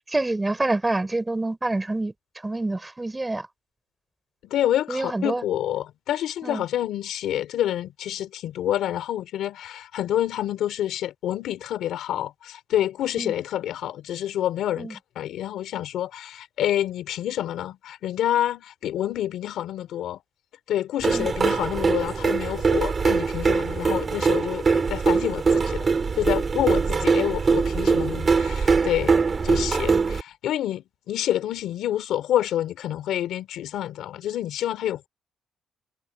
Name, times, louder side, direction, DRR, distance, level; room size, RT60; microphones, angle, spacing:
voice 1, 0.1-2.1 2.4-3.5 4.9-5.4 6.4-6.6 13.2-13.3 14.8-14.9 21.1-21.3, right 2 dB, 15° right, 5.0 m, -27 dB
voice 2, 4.4-20.2 20.7-25.9 26.1-29.2 29.4-35.1, left 12 dB, 80° left, 3.1 m, -28 dB
sound 1, 21.0-30.2, right 5 dB, 35° right, 3.1 m, -22 dB
cardioid pair, 90°, 0 cm